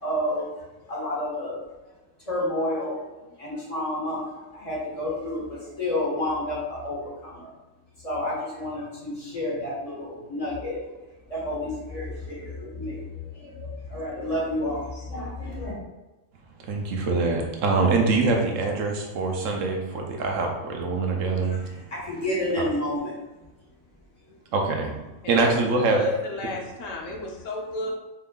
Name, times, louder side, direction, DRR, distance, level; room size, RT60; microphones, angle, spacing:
voice 1, 0.0-1.6 2.2-7.5 8.0-10.8 11.3-15.8 21.4-23.2 27.0-27.3 27.8-27.9, left 1 dB, 30° left, -6 dB, 1.5 m, -30 dB
voice 2, 16.7-21.6 24.5-24.9 25.3-26.0, right 3 dB, 80° right, 2 dB, 1.0 m, -24 dB
voice 3, 25.2-25.5 25.9-27.9, left 2 dB, 75° left, 0 dB, 1.1 m, -32 dB
4.5 x 3.7 x 2.3 m, 1.1 s
omnidirectional pair, 1.3 m